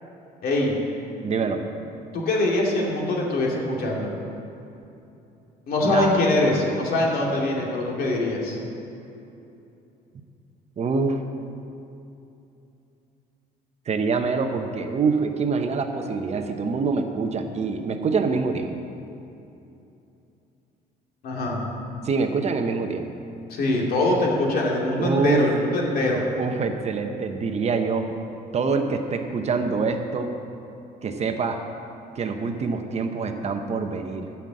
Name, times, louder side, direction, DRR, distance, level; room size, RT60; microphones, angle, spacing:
voice 1, 0.4-0.7 2.1-4.1 5.7-8.6 21.2-21.6 23.5-26.2, left 2 dB, 60° left, -1 dB, 2.4 m, -23 dB
voice 2, 1.2-1.6 5.8-6.2 10.8-11.2 13.9-18.8 22.0-23.1 25.0-25.5 26.4-28.2 28.5-30.3 31.0-31.6 32.1-34.3, right 4 dB, 40° right, 6 dB, 0.9 m, -25 dB
13.0 x 5.8 x 7.7 m, 2.8 s
cardioid pair, 110°, 17 cm